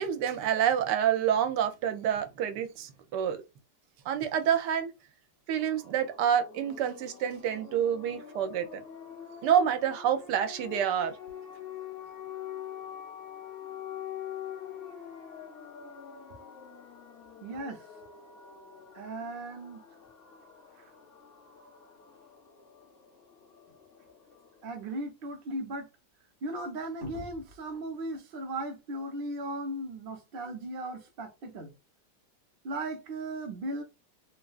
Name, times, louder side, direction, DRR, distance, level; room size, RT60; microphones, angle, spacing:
voice 1, 0.0-3.4 4.1-4.9 5.5-8.8 9.4-11.2, right 9 dB, 90° right, 1.2 m, -28 dB
sound 1, 5.5-24.9, left 9 dB, 50° left, 1.4 m, -45 dB
voice 2, 17.4-17.8 18.9-19.8 24.6-25.9 26.4-31.7 32.6-33.8, right 1 dB, 45° right, 0.8 m, -37 dB
3.7 x 2.3 x 2.3 m
omnidirectional pair, 1.8 m